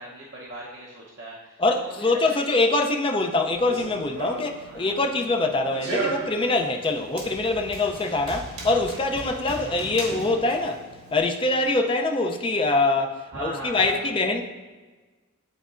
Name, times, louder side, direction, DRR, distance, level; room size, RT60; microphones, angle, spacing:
voice 1, 0.0-2.8 4.6-5.0 7.6-7.9 8.9-9.2 13.3-14.1, right 1 dB, 55° right, -5 dB, 0.8 m, -40 dB
voice 2, 1.6-10.8 11.1-14.4, left 2 dB, 25° left, 3 dB, 0.4 m, -24 dB
Run, 3.5-11.2, right 3 dB, 85° right, 1.4 m, -36 dB
10.5 x 4.0 x 2.5 m, 1.3 s
head